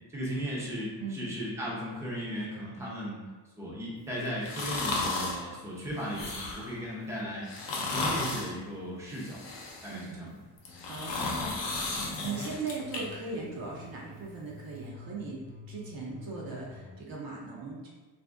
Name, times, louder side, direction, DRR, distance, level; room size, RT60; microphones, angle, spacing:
voice 1, 0.1-3.2 3.6-7.5 7.7-9.4 9.8-10.4, equal, 5° right, -6 dB, 0.6 m, -36 dB
sound 1, 4.4-5.4 6.0-6.8 7.5-8.5 9.1-10.0 10.6-13.0 13.4-13.5, left 3 dB, 80° left, 0.7 m, -34 dB
sound 2, 10.6-13.1 13.4-15.2 15.4-17.0, left 3 dB, 35° left, 0.5 m, -50 dB
voice 2, 10.9-11.9 12.2-17.9, right 4 dB, 55° right, -3 dB, 0.6 m, -39 dB
2.6 x 2.6 x 3.4 m, 1.3 s
wide cardioid pair, 170°, 43 cm